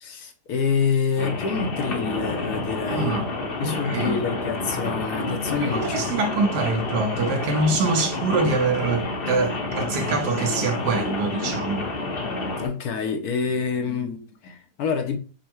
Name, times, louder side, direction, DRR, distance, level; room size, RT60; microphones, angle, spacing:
voice 1, 0.0-3.3 3.6-6.2 12.6-15.2, left 6 dB, 65° left, 1.1 m, -27 dB
Rain, 1.2-12.7, left 2 dB, 45° left, 0.8 m, -29 dB
voice 2, 2.9-3.2 3.6-4.2 5.6-11.9, right 3 dB, 70° right, 1.3 m, -24 dB
5.5 x 2.1 x 4.3 m
omnidirectional pair, 1.9 m